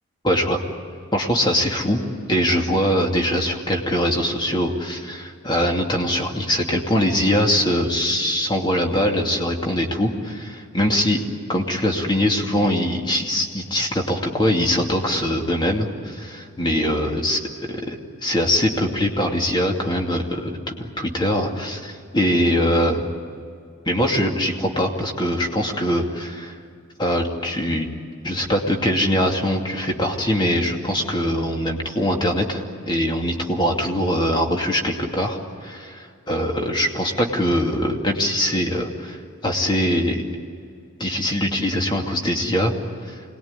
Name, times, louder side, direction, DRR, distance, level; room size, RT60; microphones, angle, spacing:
voice 1, 0.2-0.6 1.1-2.0 2.3-11.2 11.5-17.4 17.7-23.1 23.9-26.6 27.0-27.9 28.2-40.2 41.0-42.7 43.1-43.2, equal, 20° left, 1 dB, 2.5 m, -22 dB
26.0 x 20.5 x 9.7 m, 2.4 s
head